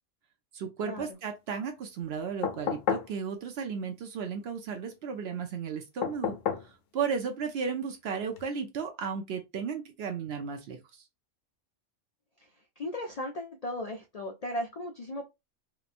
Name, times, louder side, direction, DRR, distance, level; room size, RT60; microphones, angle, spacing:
voice 1, 0.5-6.4 6.9-11.0, right 6 dB, 65° right, 0.7 m, -34 dB
sound 1, 2.4-3.2 6.0-6.7 8.3-8.4, left 8 dB, 80° left, 1.0 m, -31 dB
voice 2, 12.8-15.2, left 1 dB, 60° left, 0.4 m, -36 dB
2.9 x 2.2 x 2.4 m
omnidirectional pair, 1.3 m